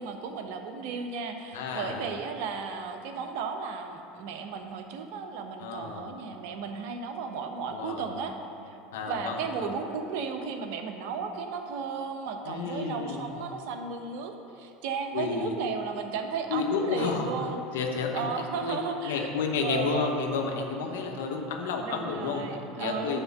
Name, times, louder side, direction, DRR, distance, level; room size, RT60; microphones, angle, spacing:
voice 1, 0.0-8.3 8.7-8.8 9.1-17.6 18.1-19.3 19.6-20.1 21.8-23.2, right 5 dB, 65° right, 5 dB, 0.8 m, -34 dB
voice 2, 1.5-2.1 5.6-6.1 7.7-8.1 8.9-9.7 12.4-13.3 15.1-15.5 16.5-17.3 17.7-18.3 18.6-18.8 19.0-22.4 22.8-23.2, left 5 dB, 75° left, 2 dB, 1.0 m, -31 dB
9.7 x 3.7 x 7.1 m, 2.7 s
hypercardioid pair, 75°, 0 cm